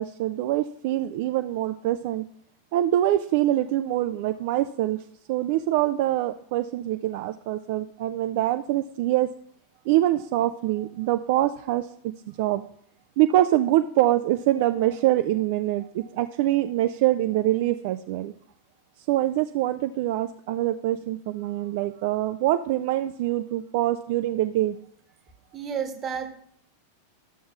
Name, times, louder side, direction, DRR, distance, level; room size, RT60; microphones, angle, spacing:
voice 1, 0.0-2.2 2.7-5.0 5.3-9.3 9.9-11.9 12.4-12.6 13.2-18.3 19.1-24.8, right 14 dB, 50° right, 9 dB, 0.3 m, -24 dB
voice 2, 25.5-26.3, right 7 dB, 25° right, 6 dB, 1.1 m, -31 dB
13.5 x 7.0 x 2.4 m, 0.64 s
figure-of-eight pair, 90°, 0 cm